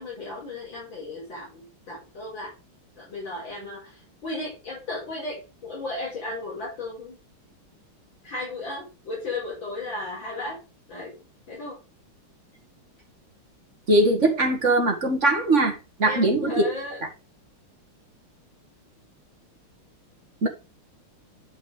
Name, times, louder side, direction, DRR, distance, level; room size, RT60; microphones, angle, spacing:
voice 1, 0.0-2.5 3.0-7.2 8.2-10.6 10.9-11.2 11.5-11.8 16.0-17.0, left 2 dB, 60° left, 5.4 m, -35 dB
voice 2, 13.9-16.6 20.4-20.5, right 2 dB, 35° right, 1.9 m, -21 dB
10.5 x 5.3 x 3.5 m
omnidirectional pair, 2.3 m